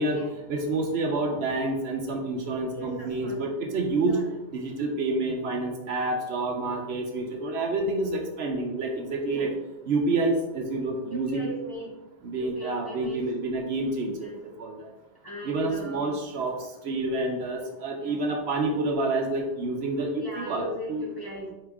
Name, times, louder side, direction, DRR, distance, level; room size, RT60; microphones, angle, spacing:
voice 1, 0.5-4.2 4.5-9.5 9.9-11.5 12.2-14.3 14.6-14.7 15.4-16.5 16.8-21.1, right 2 dB, 65° right, 2 dB, 0.9 m, -28 dB
voice 2, 2.7-3.4 4.0-4.4 9.3-9.5 11.1-12.0 12.3-13.3 14.2-14.4 15.2-16.1 18.0-18.2 20.1-21.5, right 1 dB, 20° left, -5 dB, 0.8 m, -39 dB
4.7 x 2.8 x 3.4 m, 0.97 s
omnidirectional pair, 1.2 m